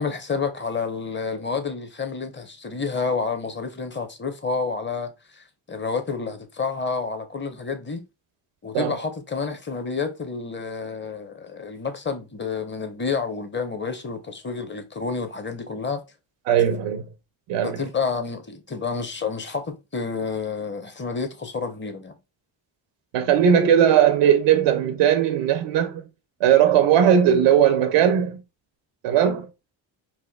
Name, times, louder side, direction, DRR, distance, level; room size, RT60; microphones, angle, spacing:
voice 1, 0.0-8.0 8.6-16.0 17.6-22.2, left 5 dB, 25° left, 0.8 m, -29 dB
voice 2, 16.5-17.1 17.5-17.8 23.1-26.0 26.4-28.4 29.0-29.5, right 9 dB, 85° right, 0.6 m, -18 dB
4.3 x 2.6 x 2.2 m
cardioid pair, 75°, 49 cm